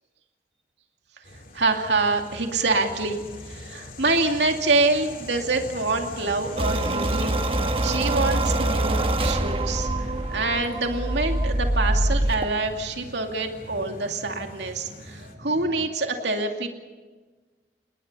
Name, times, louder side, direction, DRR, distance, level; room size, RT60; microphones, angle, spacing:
sound 1, 1.2-15.3, left 1 dB, 50° left, 2.7 m, -41 dB
voice 1, 1.5-7.4 7.8-16.7, right 3 dB, 85° right, 3 dB, 2.5 m, -26 dB
sound 2, 3.8-15.9, equal, 15° right, 5.4 m, -47 dB
sound 3, 6.6-12.5, right 1 dB, 30° right, 1.1 m, -24 dB
29.0 x 20.0 x 5.6 m, 1.3 s
head